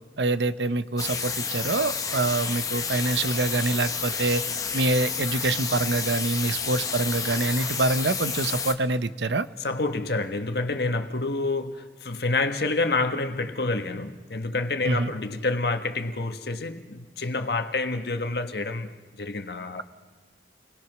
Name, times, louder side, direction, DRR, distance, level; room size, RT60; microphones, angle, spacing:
voice 1, 0.2-4.4 4.7-9.5 14.8-15.1, right 2 dB, 90° right, 0.9 m, -25 dB
sound 1, 1.0-8.7, left 5 dB, 20° left, 1.3 m, -30 dB
voice 2, 9.6-19.8, left 3 dB, 70° left, 1.5 m, -28 dB
29.5 x 21.0 x 6.1 m
head